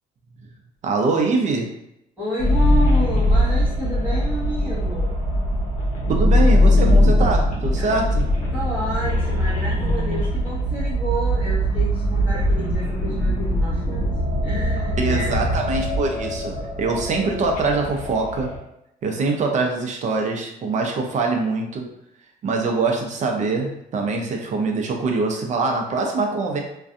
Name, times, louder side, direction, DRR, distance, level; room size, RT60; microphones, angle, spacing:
voice 1, 0.8-1.7 6.1-8.2 15.0-18.5 19.0-21.8 22.4-26.6, right 3 dB, 45° right, 2 dB, 0.6 m, -23 dB
voice 2, 2.2-5.2 7.8-7.9 8.5-14.1 14.4-15.3, equal, 10° right, -12 dB, 1.2 m, -30 dB
sound 1, 2.4-18.6, left 1 dB, 55° left, 0.8 m, -21 dB
2.5 x 2.3 x 2.5 m, 0.81 s
cardioid pair, 110°, 17 cm